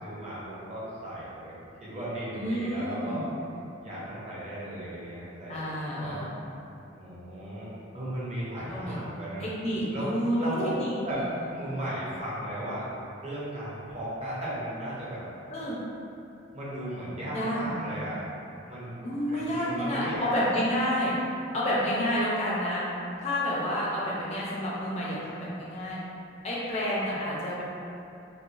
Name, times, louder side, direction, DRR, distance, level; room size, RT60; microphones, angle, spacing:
voice 1, 0.0-1.5 1.8-3.2 3.8-6.3 6.9-9.5 9.9-10.1 10.4-10.7 11.0-11.2 11.5-12.9 13.2-15.2 16.5-18.2 18.7-19.0 19.3-20.6, right 1 dB, 30° right, -8 dB, 0.6 m, -36 dB
voice 2, 2.3-3.2 5.5-6.4 8.6-9.0 9.4-11.3 15.5-15.8 17.3-18.0 19.0-21.1 21.5-22.8 23.2-26.0 26.4-27.6, equal, 30° left, -6 dB, 0.4 m, -29 dB
3.0 x 2.0 x 2.5 m, 2.6 s
head